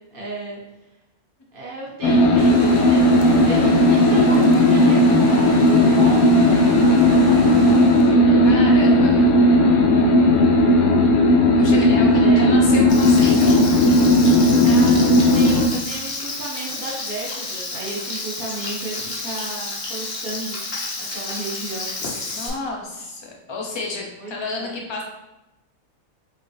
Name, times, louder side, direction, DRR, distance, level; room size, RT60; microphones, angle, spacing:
voice 1, 0.1-0.6 1.5-8.5 11.9-12.5 14.5-20.6 20.9-21.9 24.2-24.7, right 2 dB, 40° right, -3 dB, 1.3 m, -34 dB
sound 1, 2.0-15.7, left 1 dB, 80° left, 1.0 m, -15 dB
sound 2, 2.4-8.2, right 3 dB, 75° right, 1.0 m, -35 dB
voice 2, 8.4-9.3 11.6-13.7 14.3-14.4 22.3-25.0, left 3 dB, 25° left, -1 dB, 0.6 m, -31 dB
Frying (food), 12.9-22.5, left 3 dB, 50° left, 1.1 m, -31 dB
5.1 x 2.8 x 3.2 m, 0.97 s
omnidirectional pair, 1.5 m